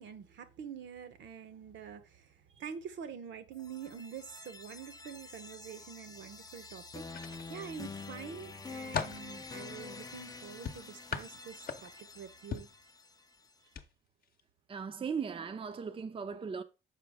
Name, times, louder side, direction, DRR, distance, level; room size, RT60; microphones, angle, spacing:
voice 1, 0.0-7.0 7.5-12.7, right 7 dB, 70° right, 0.8 m, -46 dB
sound 1, 3.5-13.5, left 4 dB, 20° left, 0.5 m, -47 dB
sound 2, 7.1-7.9 8.4-9.3 10.6-12.1 12.5-12.8 13.7-13.9 14.2-14.4, left 6 dB, 45° left, 0.8 m, -39 dB
voice 2, 14.7-16.6, right 6 dB, 30° right, 0.5 m, -38 dB
6.7 x 4.7 x 3.4 m
cardioid pair, 90°, 20 cm